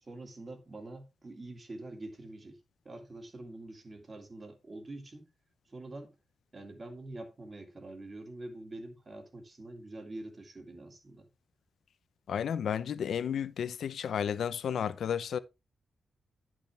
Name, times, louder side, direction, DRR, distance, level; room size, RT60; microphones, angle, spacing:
voice 1, 0.0-5.3 5.7-6.1 6.5-11.3, right 2 dB, 30° right, 2.1 m, -45 dB
voice 2, 12.3-15.4, left 8 dB, 70° left, 0.6 m, -32 dB
10.5 x 6.3 x 3.4 m
wide cardioid pair, 140°, 0 cm